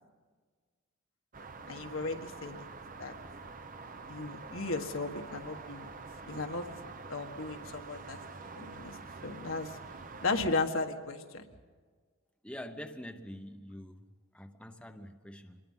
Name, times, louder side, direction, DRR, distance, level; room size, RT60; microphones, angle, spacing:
sound 1, 1.3-10.5, right 4 dB, 40° right, 0.9 m, -46 dB
voice 1, 1.7-2.7 3.0-3.1 4.1-5.9 6.3-6.7 7.1-8.2 8.6-9.0 9.2-9.8 10.2-11.5, left 3 dB, 75° left, 1.7 m, -35 dB
voice 2, 12.4-14.1 14.3-15.6, left 1 dB, 5° left, 0.9 m, -45 dB
26.5 x 21.5 x 5.7 m
head